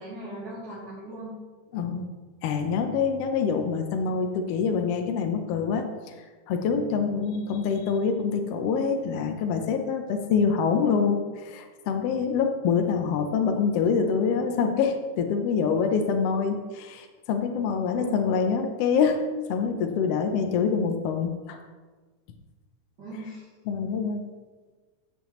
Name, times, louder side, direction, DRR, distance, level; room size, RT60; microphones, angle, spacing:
voice 1, 0.0-1.3 17.9-18.3 23.0-23.5, right 1 dB, 35° right, -11 dB, 3.0 m, -38 dB
voice 2, 1.7-2.1 2.4-6.1 6.5-21.6 23.7-24.3, left 6 dB, 75° left, 5 dB, 1.4 m, -25 dB
13.5 x 7.7 x 3.1 m, 1.3 s
omnidirectional pair, 3.6 m